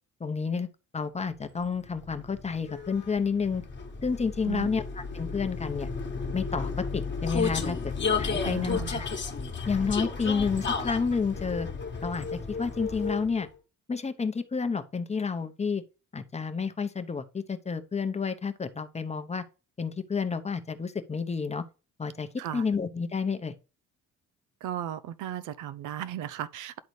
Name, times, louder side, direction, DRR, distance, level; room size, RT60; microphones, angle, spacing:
voice 1, 0.2-0.7 0.9-3.6 4.0-5.9 6.3-7.8 8.2-9.1 9.7-11.7 12.0-13.5 13.9-15.8 16.1-19.4 19.8-21.6 22.0-23.5, left 5 dB, 20° left, 0.8 m, -30 dB
Vehicle, 1.6-13.5, left 5 dB, 40° left, 1.3 m, -33 dB
voice 2, 8.4-9.0 22.4-22.6 24.6-26.8, right 11 dB, 80° right, 0.6 m, -36 dB
10.5 x 4.0 x 3.2 m
cardioid pair, 90°, 30 cm